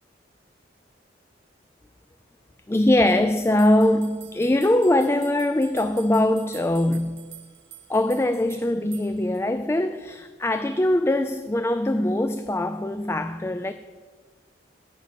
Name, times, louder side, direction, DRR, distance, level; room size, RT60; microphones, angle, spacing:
voice 1, 2.7-7.3 7.9-13.7, left 1 dB, 15° left, 0.3 m, -22 dB
sound 1, 3.4-9.4, right 13 dB, 60° right, 1.0 m, -47 dB
13.5 x 6.1 x 9.3 m
head